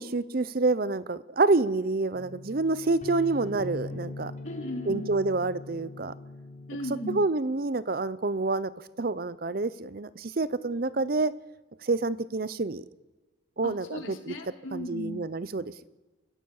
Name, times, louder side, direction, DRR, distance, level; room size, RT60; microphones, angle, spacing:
voice 1, 0.0-4.3 4.9-6.1 7.1-8.7 9.0-11.3 11.8-12.8 13.6-14.3 14.7-15.9, right 3 dB, 50° right, 16 dB, 0.7 m, -28 dB
sound 1, 2.1-7.3, left 1 dB, 35° left, 1.3 m, -41 dB
voice 2, 4.4-5.1 6.7-7.3 13.6-15.2, left 1 dB, 85° left, 2 dB, 3.2 m, -36 dB
29.0 x 16.0 x 6.6 m, 1.2 s
head